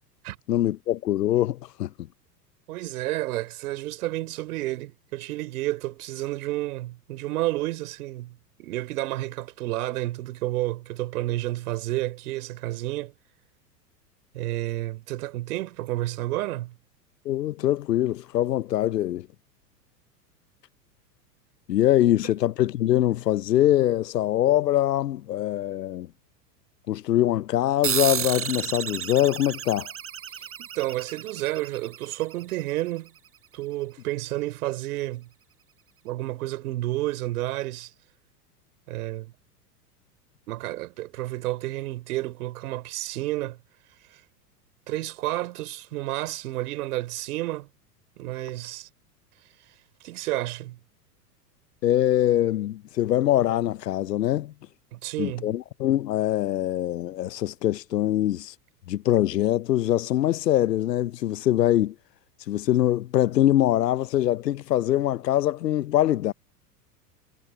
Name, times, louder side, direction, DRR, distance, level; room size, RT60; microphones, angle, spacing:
voice 1, 0.5-1.9 17.2-19.3 21.7-26.1 26.9-29.9 51.8-54.5 55.2-58.5 58.9-61.9 62.5-66.3, left 13 dB, 75° left, 0.8 m, -23 dB
voice 2, 2.7-13.1 14.3-16.7 30.6-33.1 33.5-35.3 36.0-37.9 38.9-39.3 40.5-43.6 44.9-47.7 48.2-48.9 50.0-50.8 54.9-55.5, right 17 dB, 60° right, 4.2 m, -30 dB
sound 1, 27.8-32.8, right 9 dB, 25° right, 5.0 m, -32 dB
hypercardioid pair, 95°, 49 cm